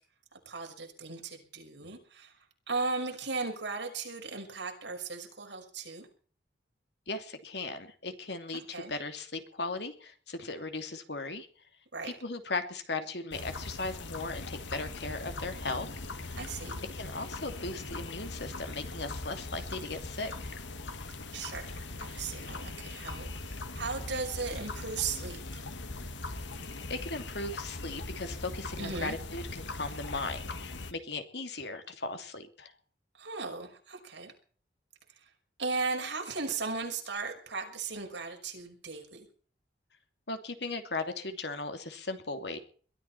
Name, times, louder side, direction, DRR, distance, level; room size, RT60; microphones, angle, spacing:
voice 1, 0.5-2.3 2.7-6.1 8.5-8.9 11.9-12.1 16.4-16.8 21.3-25.6 28.8-29.2 33.2-34.3 35.6-39.3, right 4 dB, 75° right, 2 dB, 5.8 m, -37 dB
voice 2, 7.1-11.5 12.0-15.9 16.2-16.4 16.9-20.5 26.9-32.7 40.3-42.6, left 3 dB, 65° left, 7 dB, 2.9 m, -37 dB
sound 1, 13.3-30.9, left 2 dB, 80° left, 1.8 m, -40 dB
22.0 x 13.0 x 4.4 m, 0.44 s
head